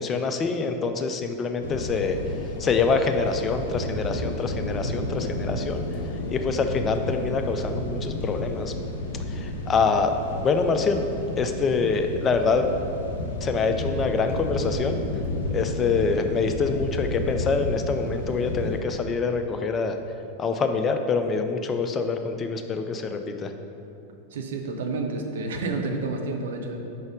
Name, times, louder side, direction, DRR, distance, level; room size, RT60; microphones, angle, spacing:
voice 1, 0.0-2.2 2.6-5.8 6.3-8.7 9.3-10.1 10.4-11.0 11.4-12.7 13.4-15.0 15.5-20.0 20.4-23.5, left 4 dB, 25° left, 6 dB, 0.4 m, -25 dB
sound 1, 1.6-18.8, left 1 dB, 65° left, 0.6 m, -31 dB
voice 2, 24.3-26.8, right 3 dB, 60° right, 4 dB, 0.6 m, -29 dB
4.8 x 4.1 x 5.0 m, 2.7 s
figure-of-eight pair, 90°, 0 cm